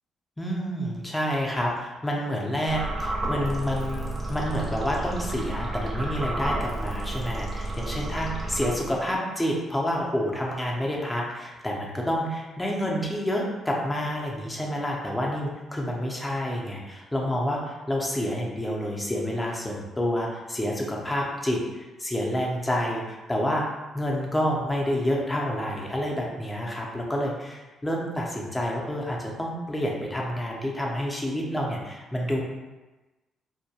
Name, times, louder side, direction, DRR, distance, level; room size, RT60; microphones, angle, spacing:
voice 1, 0.4-23.7 23.9-32.4, equal, 10° left, -2 dB, 0.5 m, -28 dB
sound 1, 2.7-9.2, right 1 dB, 30° right, 0.6 m, -31 dB
2.2 x 2.1 x 2.7 m, 1.1 s
cardioid pair, 90°, 0 cm